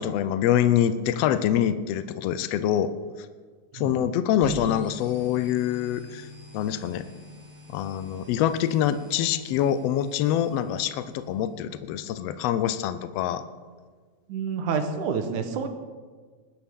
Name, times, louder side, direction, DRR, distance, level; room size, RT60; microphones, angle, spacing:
voice 1, 0.0-2.9 3.7-6.3 6.5-7.0 7.7-13.4, left 10 dB, 90° left, 11 dB, 1.4 m, -25 dB
sound 1, 4.4-12.0, equal, 5° left, 3.5 m, -43 dB
voice 2, 14.3-15.7, right 6 dB, 75° right, 7 dB, 2.5 m, -28 dB
20.5 x 11.5 x 3.7 m, 1.5 s
omnidirectional pair, 3.6 m